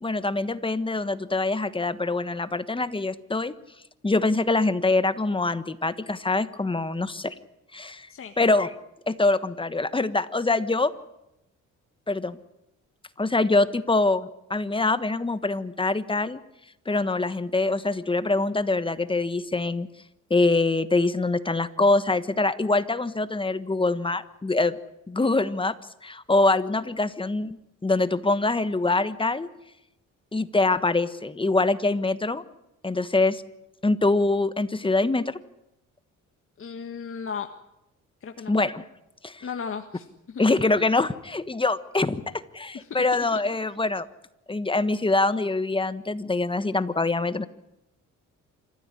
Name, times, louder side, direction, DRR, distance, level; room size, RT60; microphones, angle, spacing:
voice 1, 0.0-3.5 4.0-7.3 7.7-8.1 8.4-8.7 9.1-10.9 12.1-12.4 13.2-16.4 16.9-19.9 20.3-24.8 25.1-25.7 26.0-27.6 27.8-29.5 30.3-32.4 32.8-33.4 33.8-35.4 38.5-38.8 39.2-39.5 40.4-44.1 44.5-47.5, left 3 dB, 15° left, 13 dB, 1.3 m, -24 dB
voice 2, 36.6-37.5 38.2-38.5 39.4-40.4 42.7-43.0, left 6 dB, 45° left, 5 dB, 1.6 m, -35 dB
27.0 x 15.0 x 9.9 m, 0.89 s
cardioid pair, 90°, 30 cm